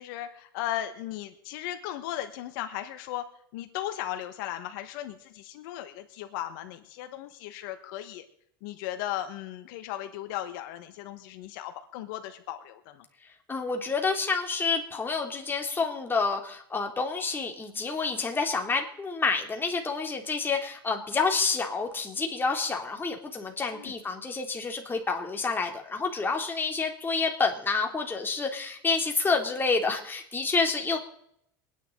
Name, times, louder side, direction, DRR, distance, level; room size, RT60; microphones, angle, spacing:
voice 1, 0.0-3.2 3.5-8.2 8.6-13.0 23.7-23.9, left 13 dB, 70° left, 8 dB, 1.3 m, -36 dB
voice 2, 13.5-31.0, left 4 dB, 20° left, 2 dB, 2.8 m, -28 dB
24.0 x 10.0 x 3.8 m, 0.69 s
supercardioid pair, 100°, 11 cm